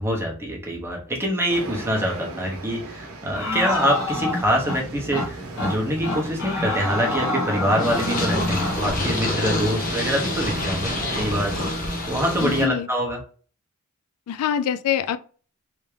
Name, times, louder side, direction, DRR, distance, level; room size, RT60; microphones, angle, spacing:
voice 1, 0.0-13.2, equal, 10° right, 0.9 m, -25 dB
sound 1, 1.5-11.7, right 2 dB, 75° right, 0.8 m, -36 dB
sound 2, 3.3-4.8 5.1-5.3 5.6-5.8 6.0-8.8, left 2 dB, 60° left, 1.2 m, -26 dB
Purr, 7.8-12.7, left 1 dB, 40° left, 0.7 m, -27 dB
voice 2, 12.4-12.9 14.3-15.2, left 9 dB, 90° left, 0.3 m, -24 dB
3.4 x 2.7 x 3.2 m
head